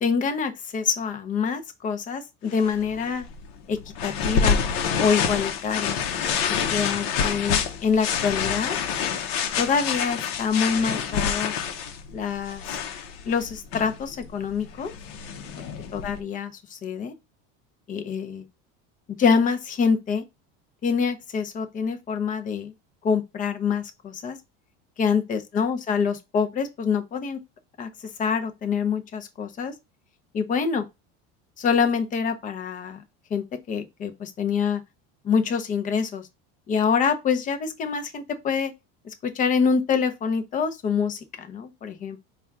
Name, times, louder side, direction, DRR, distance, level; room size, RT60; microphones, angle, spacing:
voice 1, 0.0-3.3 3.7-4.6 5.0-6.0 6.5-8.8 9.6-11.5 12.1-12.6 13.3-14.9 15.9-17.1 17.9-18.4 19.2-20.2 20.8-22.7 23.0-24.4 25.0-27.4 27.8-27.9 28.2-29.7 30.3-30.8 31.6-33.0 33.3-34.8 35.2-36.3 36.7-38.7 39.0-42.2, left 6 dB, 25° left, 0.6 m, -25 dB
sound 1, 2.5-16.2, left 7 dB, 80° left, 0.8 m, -28 dB
4.2 x 2.4 x 3.4 m
cardioid pair, 140°, 30 cm